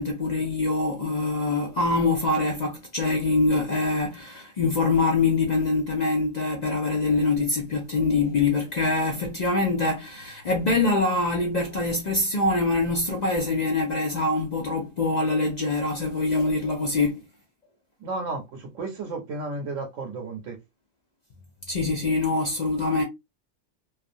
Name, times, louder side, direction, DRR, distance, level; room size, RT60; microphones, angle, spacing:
voice 1, 0.0-17.2 21.7-23.0, left 3 dB, 55° left, 0.5 m, -24 dB
voice 2, 18.0-20.6, right 3 dB, 85° right, 1.1 m, -33 dB
2.5 x 2.3 x 2.5 m
omnidirectional pair, 1.3 m